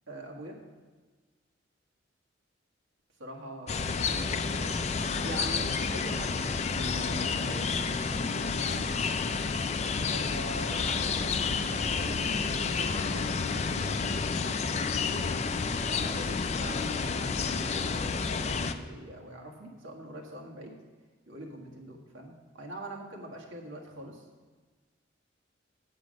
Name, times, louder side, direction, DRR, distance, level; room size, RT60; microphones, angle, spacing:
voice 1, 0.1-0.6 3.2-4.7 5.2-6.4 6.9-8.8 10.0-14.5 15.8-20.7 21.3-24.3, right 1 dB, 85° right, -1 dB, 1.7 m, -44 dB
sound 1, 3.7-18.7, left 4 dB, 35° left, 0.4 m, -30 dB
8.3 x 8.2 x 5.2 m, 1.4 s
head